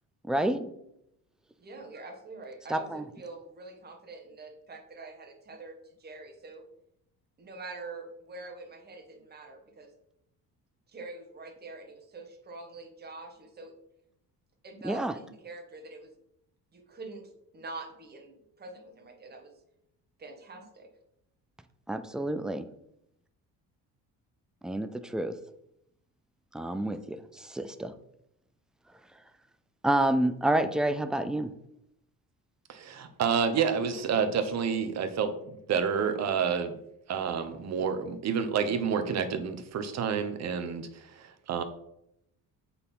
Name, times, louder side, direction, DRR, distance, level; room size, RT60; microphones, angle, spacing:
voice 1, 0.3-0.7 2.7-3.0 14.8-15.1 21.9-22.7 24.6-25.3 26.5-27.9 29.8-31.5, right 1 dB, ahead, 9 dB, 0.3 m, -28 dB
voice 2, 1.6-6.6 7.4-9.9 10.9-13.8 14.6-16.1 16.7-19.6 20.2-20.9, right 3 dB, 25° right, 3 dB, 1.4 m, -45 dB
voice 3, 32.7-36.7 37.1-41.6, right 6 dB, 45° right, 9 dB, 1.0 m, -29 dB
7.9 x 4.3 x 5.4 m, 0.78 s
cardioid pair, 150°, 36 cm